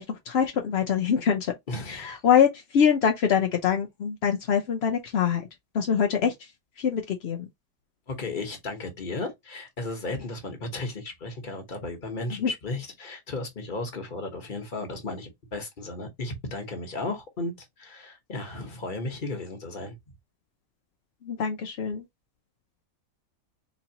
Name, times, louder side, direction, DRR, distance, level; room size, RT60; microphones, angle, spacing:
voice 1, 0.0-1.5 1.9-5.5 5.7-6.5 6.8-7.5 12.3-12.5 21.2-22.0, left 8 dB, 65° left, 0.6 m, -24 dB
voice 2, 1.7-2.2 8.1-20.0, left 2 dB, 35° left, 1.1 m, -35 dB
4.0 x 3.1 x 2.8 m
omnidirectional pair, 1.8 m